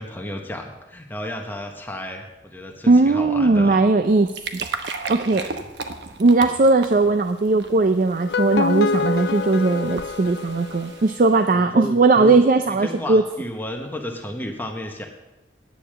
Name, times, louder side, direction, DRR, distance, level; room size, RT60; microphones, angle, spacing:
voice 1, 0.0-3.8 5.3-5.7 11.5-12.4 12.7-15.1, equal, 10° left, 2 dB, 1.0 m, -33 dB
voice 2, 2.9-4.7 4.9-5.5 6.2-13.2, right 3 dB, 50° right, 8 dB, 0.5 m, -18 dB
sound 1, 4.0-11.6, right 4 dB, 80° right, 0.9 m, -36 dB
sound 2, 8.1-11.3, left 5 dB, 70° left, 0.5 m, -26 dB
10.0 x 6.9 x 7.4 m, 0.98 s
head